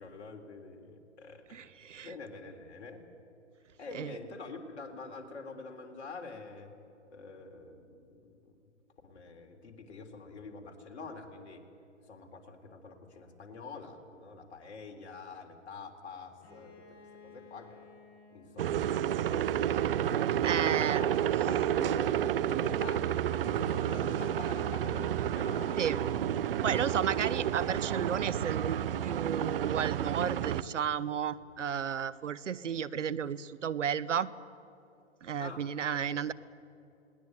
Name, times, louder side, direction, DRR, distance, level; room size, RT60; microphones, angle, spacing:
voice 1, 0.0-3.0 3.8-6.7 7.1-8.7 9.0-11.6 12.0-17.9 18.3-21.1 21.5-22.2 22.4-26.2 26.7-27.2 35.4-36.3, left 4 dB, 60° left, 3 dB, 3.8 m, -46 dB
voice 2, 1.5-2.1 3.9-4.1 20.4-21.0 25.8-26.0 26.6-34.3 35.2-36.3, right 8 dB, 75° right, 18 dB, 0.9 m, -33 dB
Bowed string instrument, 16.4-20.1, left 4 dB, 25° left, 6.9 m, -57 dB
sound 1, 18.6-30.6, right 10 dB, 50° right, 0.8 m, -30 dB
20.5 x 18.5 x 9.4 m, 2.7 s
hypercardioid pair, 135°, 37 cm